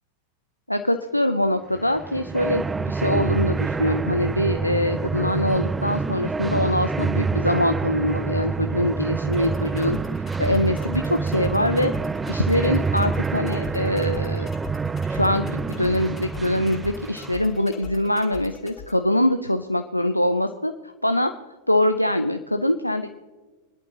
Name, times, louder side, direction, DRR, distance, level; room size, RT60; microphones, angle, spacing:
voice 1, 0.7-10.0 10.4-11.9 12.3-14.5 15.1-20.7 21.0-21.3 21.7-23.1, left 1 dB, 90° left, 7 dB, 0.6 m, -23 dB
sound 1, 1.8-17.5, right 4 dB, 15° right, 0.3 m, -27 dB
sound 2, 9.3-18.9, left 6 dB, 25° left, 2.4 m, -41 dB
25.0 x 11.0 x 2.9 m, 1.3 s
figure-of-eight pair, 90°, 0 cm